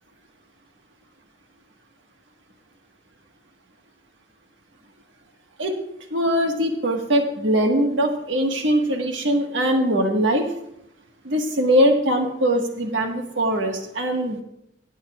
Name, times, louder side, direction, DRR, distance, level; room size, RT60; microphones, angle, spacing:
voice 1, 6.1-10.5 11.2-14.4, equal, 70° right, 3 dB, 1.6 m, -21 dB
17.0 x 9.1 x 2.4 m, 0.80 s
head